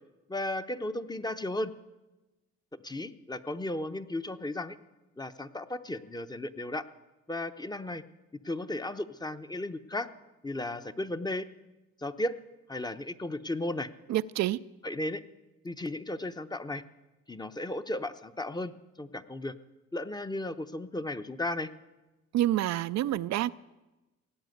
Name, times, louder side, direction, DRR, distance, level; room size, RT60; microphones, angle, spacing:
voice 1, 0.3-1.7 2.8-4.8 5.2-6.9 7.3-8.0 8.4-10.1 10.4-11.5 12.0-12.3 12.7-13.9 14.8-15.2 15.6-16.8 17.3-19.5 19.9-21.7, left 1 dB, 15° left, 0.8 m, -35 dB
voice 2, 14.1-14.6 22.3-23.5, right 14 dB, 65° right, 0.5 m, -27 dB
17.5 x 9.0 x 8.0 m
cardioid pair, 75°, 29 cm